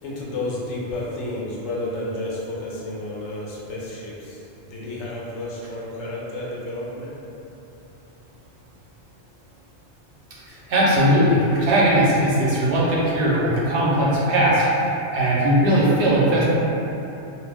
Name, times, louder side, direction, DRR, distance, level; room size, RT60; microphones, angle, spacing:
voice 1, 0.0-7.1, left 1 dB, 85° left, -5 dB, 0.9 m, -31 dB
voice 2, 10.5-16.4, right 1 dB, 80° right, -6 dB, 0.9 m, -19 dB
2.5 x 2.0 x 3.4 m, 2.9 s
omnidirectional pair, 1.2 m